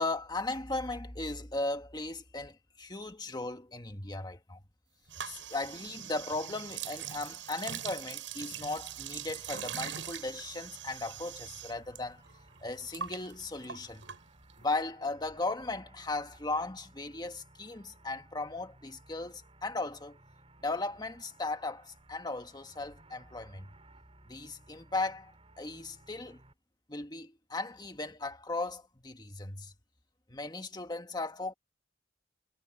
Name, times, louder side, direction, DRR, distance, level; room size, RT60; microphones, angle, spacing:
voice 1, 0.0-4.6 5.2-12.2 12.6-14.1 14.6-20.2 20.6-23.7 24.3-25.3 25.6-26.4 26.9-29.7 30.3-31.5, left 2 dB, 20° left, 1.6 m, -37 dB
sound 1, 5.1-12.0 12.3-14.7, right 9 dB, 80° right, 7.9 m, -42 dB
sound 2, 8.8-26.5, right 1 dB, 30° right, 6.1 m, -59 dB
head